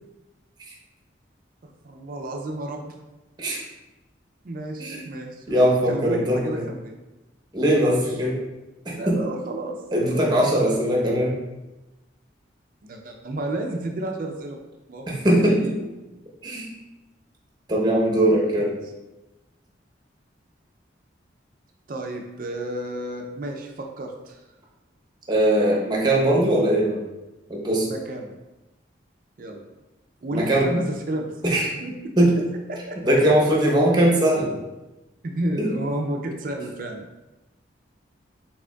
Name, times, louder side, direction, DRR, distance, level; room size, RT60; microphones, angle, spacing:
voice 1, 1.6-3.0 4.4-6.9 7.9-8.0 8.9-10.3 12.8-14.6 14.9-15.9 18.1-18.2 18.6-18.7 21.9-24.4 27.9-28.4 29.4-29.6 30.2-31.3 31.6-32.4 32.7-33.1 35.2-37.1, right 1 dB, 45° right, 3 dB, 0.4 m, -32 dB
voice 2, 5.5-6.7 7.5-8.4 8.8-9.2 9.9-11.4 15.1-15.7 16.4-16.7 17.7-18.7 25.3-27.0 27.5-27.9 30.3-30.7 31.4-31.7 32.2-32.4 33.0-34.5 35.6-35.7, right 1 dB, 20° right, -2 dB, 0.8 m, -20 dB
5.0 x 3.6 x 2.3 m, 1.0 s
head